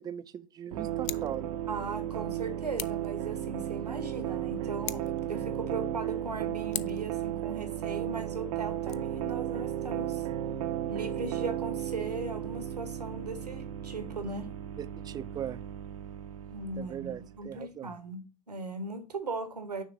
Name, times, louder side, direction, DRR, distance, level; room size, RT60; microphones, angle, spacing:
voice 1, 0.0-1.6 14.8-15.6 16.8-17.9, right 10 dB, 20° right, 0.4 m, -39 dB
sound 1, 0.7-17.5, right 11 dB, 60° right, 0.6 m, -35 dB
Scissors, 1.0-1.4 2.7-3.1 4.8-5.3 6.7-7.1 8.7-8.9, left 15 dB, 50° left, 0.4 m, -39 dB
voice 2, 1.7-10.3 10.9-14.5 16.5-19.8, right 3 dB, 85° right, 1.0 m, -38 dB
6.4 x 3.1 x 4.9 m
figure-of-eight pair, 85°, 20 cm